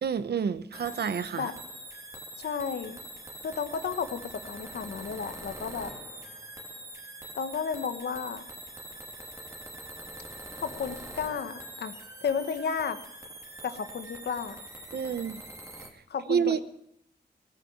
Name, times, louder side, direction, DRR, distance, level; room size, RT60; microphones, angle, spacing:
voice 1, 0.0-1.5 14.9-15.4 16.3-16.6, right 7 dB, 80° right, 13 dB, 0.9 m, -28 dB
sound 1, 0.7-15.9, right 1 dB, 20° right, 2.5 m, -44 dB
voice 2, 2.4-3.0 3.4-5.9 7.4-8.4 10.6-11.9 12.2-13.0 13.6-14.6 16.1-16.6, left 6 dB, 90° left, 10 dB, 1.3 m, -33 dB
18.0 x 9.2 x 8.7 m, 0.78 s
wide cardioid pair, 100°, 17 cm